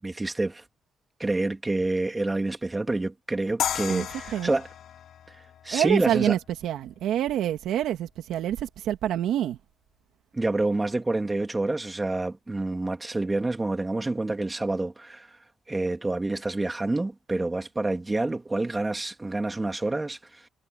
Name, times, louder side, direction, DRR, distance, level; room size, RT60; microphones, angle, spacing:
voice 1, 0.0-0.6 1.2-4.7 5.3-6.4 10.3-15.3 15.7-20.4, right 2 dB, 15° right, 3.1 m, -28 dB
sound 1, 3.6-6.7, left 10 dB, 70° left, 6.8 m, -34 dB
voice 2, 5.7-9.6, right 11 dB, 80° right, 2.2 m, -27 dB
cardioid pair, 90°, 0 cm